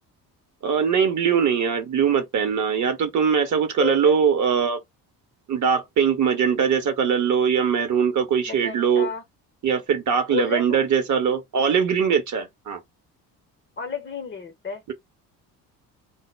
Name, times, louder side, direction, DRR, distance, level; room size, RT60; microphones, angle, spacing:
voice 1, 0.6-4.8 5.5-9.1 9.6-12.8, right 7 dB, 40° right, 0.8 m, -21 dB
voice 2, 3.8-4.2 8.5-9.2 10.3-10.8 13.8-14.8, left 6 dB, 25° left, 0.7 m, -31 dB
2.1 x 2.0 x 3.3 m
figure-of-eight pair, 50°, 48 cm